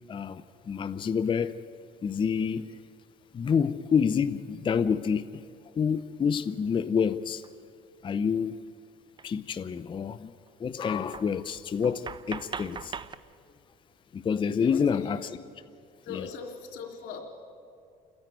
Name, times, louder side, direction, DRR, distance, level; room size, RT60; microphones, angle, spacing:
voice 1, 0.1-1.6 2.0-2.8 3.3-5.4 5.8-7.4 8.0-8.6 9.2-10.3 10.6-13.0 14.1-15.2 16.1-16.3, left 6 dB, 30° left, 12 dB, 0.5 m, -28 dB
sound 1, 7.4-7.5 9.2-9.3 9.5-9.8 10.5-10.6 11.1-13.2, right 6 dB, 30° right, 0.6 m, -40 dB
voice 2, 14.6-15.2 16.0-17.2, left 6 dB, 85° left, 2 dB, 3.2 m, -39 dB
28.5 x 10.5 x 9.1 m, 2.4 s
cardioid pair, 110°, 17 cm